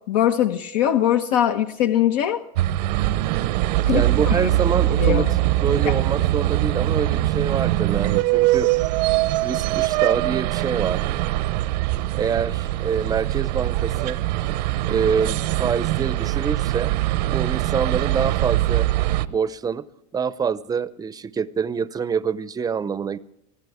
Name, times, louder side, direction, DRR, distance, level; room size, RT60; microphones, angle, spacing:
voice 1, 0.1-2.4 3.9-4.4 5.0-5.4 5.9-6.0, left 11 dB, 80° left, 6 dB, 1.1 m, -21 dB
sound 1, 2.6-19.3, right 16 dB, 80° right, 0.9 m, -22 dB
voice 2, 3.9-5.3 5.6-8.7 9.4-11.1 12.1-14.2 14.9-16.9 17.2-18.9 19.3-19.8 20.1-23.2, right 6 dB, 20° right, 16 dB, 0.6 m, -26 dB
24.0 x 16.0 x 3.6 m, 0.84 s
supercardioid pair, 135°, 21 cm